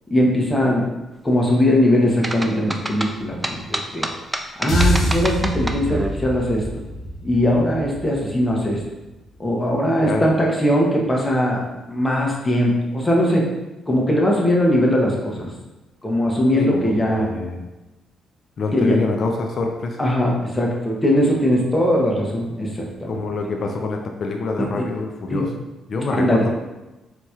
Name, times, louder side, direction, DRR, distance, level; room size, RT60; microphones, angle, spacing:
voice 1, 0.1-0.9 1.2-4.1 4.6-6.7 7.2-8.8 9.4-13.5 13.9-15.5 16.0-17.3 18.7-19.0 20.0-23.1 24.6-24.9 25.3-25.5 26.1-26.5, left 1 dB, 15° left, -2 dB, 0.9 m, -20 dB
sound 1, 2.2-6.1, right 1 dB, 15° right, 0.4 m, -27 dB
sound 2, 4.7-9.0, right 1 dB, 80° left, 0.9 m, -25 dB
voice 2, 16.6-17.7 18.6-20.0 23.1-25.5 25.9-26.5, left 3 dB, 55° left, 3 dB, 0.4 m, -26 dB
4.1 x 2.9 x 2.4 m, 1.1 s
supercardioid pair, 70°, 0 cm